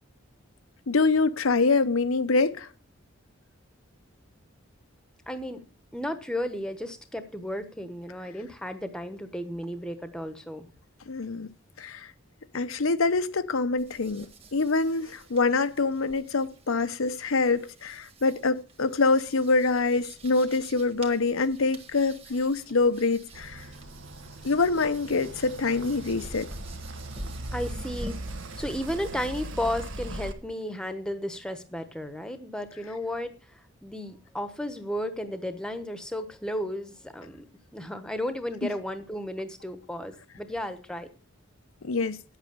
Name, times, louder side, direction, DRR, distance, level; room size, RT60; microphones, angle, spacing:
voice 1, 0.9-2.7 11.1-11.5 11.8-12.1 12.5-23.6 24.4-26.5 41.8-42.2, left 3 dB, 75° left, 0.8 m, -25 dB
voice 2, 5.3-5.6 5.9-10.7 27.5-37.5 37.7-41.1, left 1 dB, 5° left, 1.0 m, -34 dB
sound 1, 13.8-29.5, right 1 dB, 25° right, 1.8 m, -46 dB
sound 2, 23.3-30.3, right 1 dB, 65° right, 1.3 m, -40 dB
9.8 x 8.2 x 6.8 m
head